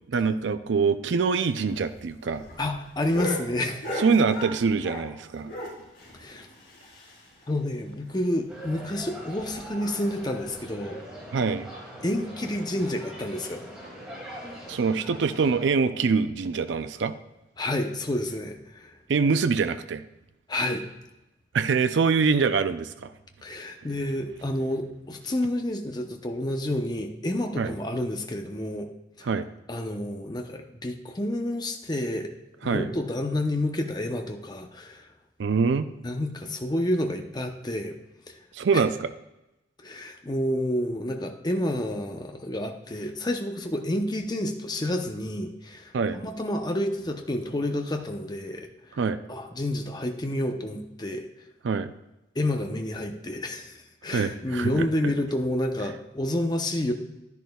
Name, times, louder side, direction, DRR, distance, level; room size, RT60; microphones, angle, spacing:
voice 1, 0.1-2.4 4.0-5.5 11.3-11.7 14.7-17.1 19.1-20.0 21.5-23.1 27.6-27.7 29.2-29.5 32.6-32.9 35.4-35.9 38.5-39.1 45.9-46.2 49.0-49.2 51.6-51.9 54.1-55.1, right 5 dB, 75° right, 11 dB, 0.4 m, -24 dB
sound 1, 1.7-5.2 5.4-7.4 7.7-7.8 8.1-8.2 8.6-8.7 9.3-9.6 10.4-10.5, left 1 dB, 50° left, 3.2 m, -37 dB
voice 2, 2.6-3.9 6.1-6.5 7.5-11.0 12.0-13.6 17.6-18.9 20.5-20.8 23.4-28.9 29.2-29.3 29.7-32.3 32.6-35.1 36.0-38.0 39.8-45.9 46.2-48.7 49.3-51.3 52.4-56.9, left 1 dB, 20° left, 5 dB, 0.7 m, -29 dB
sound 2, 8.5-15.7, equal, 5° right, 2.4 m, -42 dB
11.0 x 10.5 x 2.3 m, 0.96 s
head